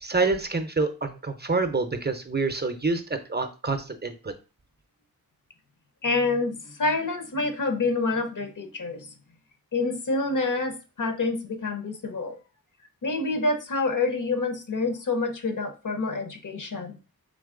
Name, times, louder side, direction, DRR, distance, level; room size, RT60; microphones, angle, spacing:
voice 1, 0.0-4.3, right 3 dB, 30° right, 8 dB, 0.6 m, -27 dB
voice 2, 6.0-9.1 9.7-12.4 13.0-17.0, left 3 dB, 60° left, 7 dB, 0.8 m, -27 dB
3.8 x 3.1 x 3.7 m, 0.32 s
wide cardioid pair, 60°, 36 cm